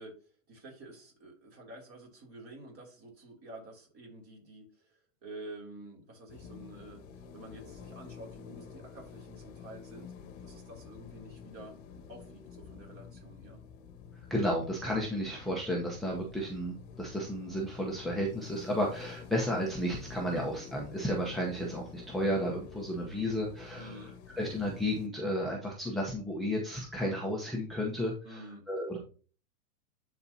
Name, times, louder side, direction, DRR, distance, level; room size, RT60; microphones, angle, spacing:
voice 1, 0.0-7.0 7.3-10.1 10.4-11.8 12.1-13.6 20.2-20.4 23.7-24.2 28.2-28.6, right 1 dB, 30° right, -1 dB, 3.1 m, -49 dB
sound 1, 6.3-25.1, left 6 dB, 50° left, 1.1 m, -49 dB
voice 2, 14.3-24.1 24.4-29.0, equal, ahead, -2 dB, 0.8 m, -33 dB
12.0 x 4.2 x 2.8 m, 0.39 s
hypercardioid pair, 135°, 44 cm